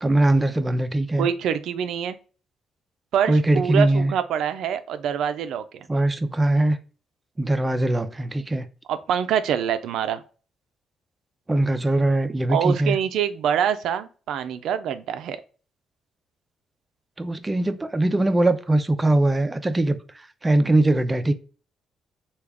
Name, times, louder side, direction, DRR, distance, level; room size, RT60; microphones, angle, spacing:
voice 1, 0.0-1.3 3.3-4.1 5.9-6.8 7.4-8.7 11.5-13.0 17.2-21.3, right 2 dB, 20° right, 0.4 m, -21 dB
voice 2, 1.2-2.2 3.1-5.9 8.9-10.2 12.5-15.4, right 8 dB, 80° right, 0.4 m, -25 dB
3.4 x 2.3 x 3.4 m
cardioid pair, 90°, 0 cm